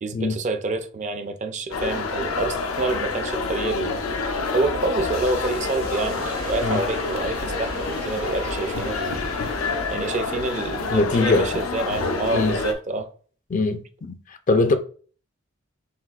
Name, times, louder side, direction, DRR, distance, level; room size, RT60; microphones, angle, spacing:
voice 1, 0.0-4.0 4.5-9.2 9.9-13.1, right 3 dB, 35° right, 0.4 m, -27 dB
sound 1, 1.7-12.7, left 4 dB, 90° left, 0.7 m, -28 dB
sound 2, 3.8-12.4, right 1 dB, 90° right, 1.7 m, -40 dB
voice 2, 10.9-11.5 12.3-12.6 13.5-14.8, left 3 dB, 40° left, 0.4 m, -22 dB
4.8 x 3.5 x 2.4 m
head